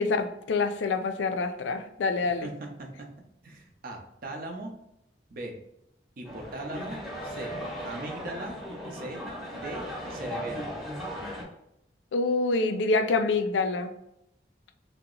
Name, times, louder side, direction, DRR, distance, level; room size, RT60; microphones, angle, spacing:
voice 1, 0.0-2.5 12.1-13.9, left 3 dB, 90° left, 8 dB, 0.3 m, -26 dB
voice 2, 2.4-3.1 3.4-4.7 5.3-5.5 6.2-7.5 7.8-8.6 8.9-9.2 9.5-9.8 10.1-10.7, right 2 dB, 55° right, 2 dB, 0.5 m, -39 dB
sound 1, 6.2-11.4, equal, ahead, 0.7 m, -37 dB
2.8 x 2.0 x 3.7 m, 0.81 s
head